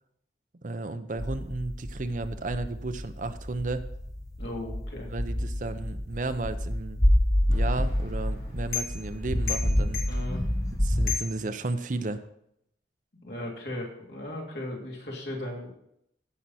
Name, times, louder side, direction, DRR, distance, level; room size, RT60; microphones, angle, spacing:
voice 1, 0.6-3.8 5.1-7.0 7.5-10.0 10.8-12.2, right 2 dB, 45° right, 10 dB, 0.6 m, -33 dB
sound 1, 1.2-11.1, left 1 dB, 20° left, 0.8 m, -28 dB
voice 2, 4.4-5.1 10.1-10.4 13.2-15.7, left 1 dB, 70° left, -2 dB, 3.0 m, -36 dB
sound 2, 7.5-12.2, left 9 dB, 55° left, 2.6 m, -38 dB
15.5 x 5.9 x 4.2 m, 0.74 s
head